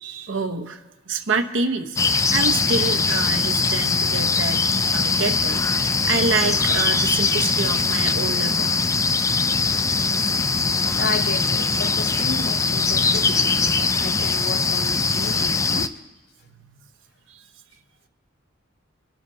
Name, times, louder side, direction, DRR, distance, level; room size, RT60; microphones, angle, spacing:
voice 1, 0.0-2.0 2.3-4.6 4.9-8.7 17.3-17.4, right 4 dB, 75° right, 1.0 m, -27 dB
sound 1, 2.0-15.9, left 4 dB, 15° left, 0.3 m, -21 dB
voice 2, 10.9-16.0, left 3 dB, 55° left, 0.6 m, -32 dB
27.0 x 11.5 x 2.8 m
head